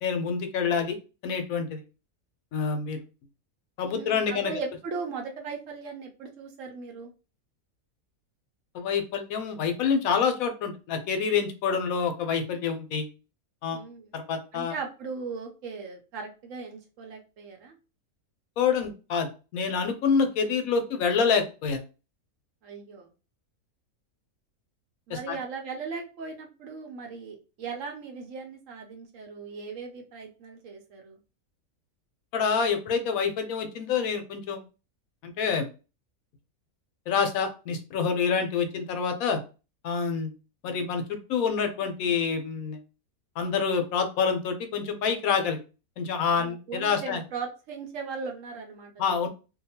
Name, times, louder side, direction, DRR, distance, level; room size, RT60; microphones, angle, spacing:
voice 1, 0.0-1.0 1.2-1.8 2.5-3.0 3.8-4.5 8.7-13.1 13.6-13.8 14.1-14.7 18.6-21.8 25.1-25.4 32.3-34.6 35.2-35.7 37.1-39.4 39.8-40.3 40.6-42.8 43.4-45.6 46.0-47.2 49.0-49.3, left 6 dB, 75° left, 6 dB, 1.0 m, -27 dB
voice 2, 3.9-7.1 13.7-14.1 14.5-17.8 22.6-23.1 25.1-31.2 46.2-48.9, right 5 dB, 65° right, 2 dB, 1.0 m, -38 dB
2.7 x 2.2 x 2.7 m, 0.32 s
omnidirectional pair, 1.5 m